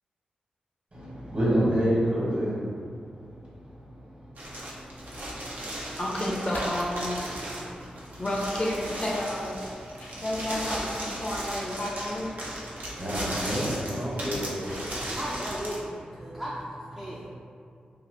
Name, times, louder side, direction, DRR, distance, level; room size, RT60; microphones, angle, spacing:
voice 1, 0.9-6.0 7.4-8.2 9.7-10.2 12.3-15.2 16.2-16.4 17.0-17.2, equal, 45° right, -8 dB, 1.4 m, -31 dB
sound 1, 4.4-15.8, right 1 dB, 65° right, 0.7 m, -36 dB
voice 2, 6.0-7.3 8.2-9.6 10.2-12.3 14.7-14.8 15.2-15.3, left 1 dB, 35° left, -3 dB, 0.6 m, -31 dB
sound 2, 6.2-12.3, left 1 dB, 70° left, 0.7 m, -45 dB
voice 3, 15.2-17.4, equal, 10° right, -7 dB, 0.5 m, -36 dB
2.9 x 2.3 x 3.1 m, 2.3 s
cardioid pair, 45°, 3 cm